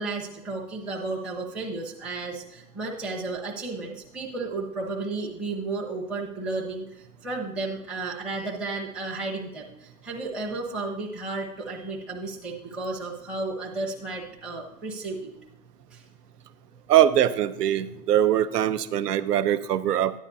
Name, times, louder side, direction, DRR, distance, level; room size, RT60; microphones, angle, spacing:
voice 1, 0.0-15.3 15.9-16.0, right 3 dB, ahead, -4 dB, 0.6 m, -33 dB
voice 2, 16.9-20.1, right 11 dB, 80° right, 12 dB, 0.8 m, -22 dB
13.5 x 9.8 x 2.7 m, 0.84 s
hypercardioid pair, 145°, 47 cm